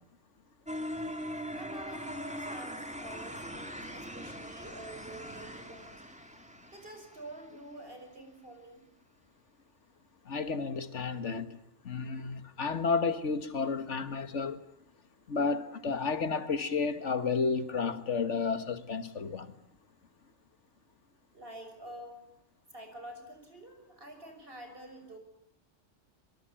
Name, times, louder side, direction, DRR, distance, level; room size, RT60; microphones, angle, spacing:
sound 1, 0.7-7.6, equal, 5° right, 2.5 m, -41 dB
voice 1, 1.5-6.0 6.7-8.9 21.3-22.3 22.7-25.2, right 1 dB, 50° right, 6.4 m, -48 dB
voice 2, 10.3-14.6 15.3-19.5, left 5 dB, 85° left, 1.9 m, -32 dB
25.5 x 23.5 x 8.9 m
omnidirectional pair, 1.2 m